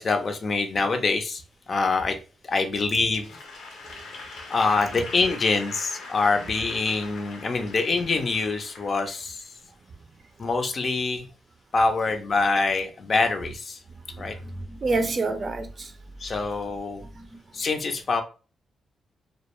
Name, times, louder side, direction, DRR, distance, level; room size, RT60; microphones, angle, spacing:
voice 1, 0.0-1.4 1.7-2.2 2.5-3.3 4.5-9.5 10.4-11.3 11.7-13.8 14.2-14.3 16.2-17.0 17.5-18.2, left 3 dB, 45° left, 0.5 m, -25 dB
Applause / Crowd, 3.2-9.6, left 3 dB, 90° left, 0.7 m, -42 dB
voice 2, 14.1-15.9 17.0-17.4, right 3 dB, 45° right, 0.5 m, -29 dB
2.2 x 2.1 x 2.9 m
cardioid pair, 80°, 0 cm